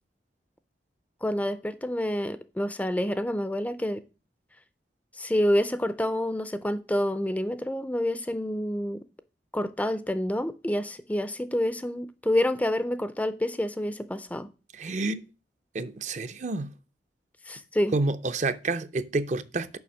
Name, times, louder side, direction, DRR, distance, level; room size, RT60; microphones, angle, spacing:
voice 1, 1.2-4.0 5.2-9.0 9.5-14.5 17.5-17.9, left 1 dB, 10° left, 0.4 m, -28 dB
voice 2, 14.7-15.2 15.7-16.7 17.9-19.8, right 3 dB, 40° right, 0.5 m, -29 dB
7.0 x 5.5 x 6.1 m
head